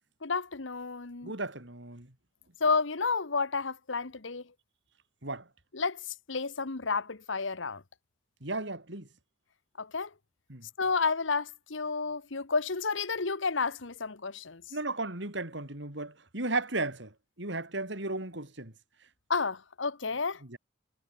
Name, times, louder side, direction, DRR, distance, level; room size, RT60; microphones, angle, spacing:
voice 1, 0.2-1.3 2.6-4.4 5.7-7.8 9.8-10.1 10.8-14.8 19.3-20.4, left 4 dB, 75° left, 1.3 m, -31 dB
voice 2, 1.2-2.1 5.2-5.4 8.4-9.1 10.5-10.7 14.7-17.1 17.4-18.7 20.5-20.6, right 2 dB, 65° right, 4.0 m, -35 dB
head